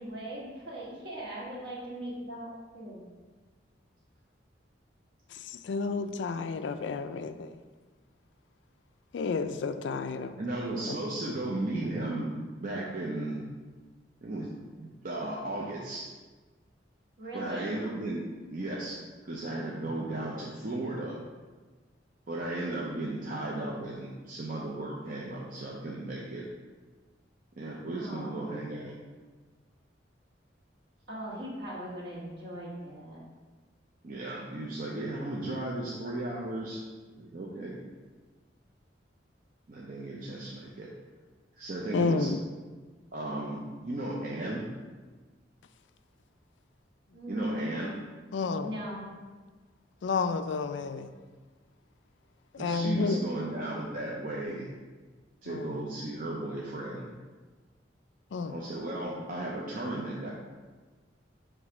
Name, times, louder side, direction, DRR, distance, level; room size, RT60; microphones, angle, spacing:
voice 1, 0.0-3.1 17.2-17.7 28.0-28.5 31.1-33.2 47.1-48.0 48.6-49.0, equal, 65° right, -5 dB, 1.8 m, -39 dB
voice 2, 5.5-7.5 9.1-10.3 41.9-42.4 48.3-48.7 50.0-51.1 52.6-53.2 55.5-55.7 58.3-58.5, left 4 dB, 75° left, 10 dB, 0.4 m, -30 dB
voice 3, 10.4-13.4 14.2-14.5 14.8-16.1 17.3-21.2 22.3-26.5 27.6-28.9 34.0-36.9 37.2-37.8 39.7-40.9 41.6-42.3 43.1-44.7 47.3-47.9 52.6-54.7 55.4-57.1 58.4-60.3, right 2 dB, 45° right, -4 dB, 0.6 m, -35 dB
6.1 x 3.3 x 4.8 m, 1.4 s
head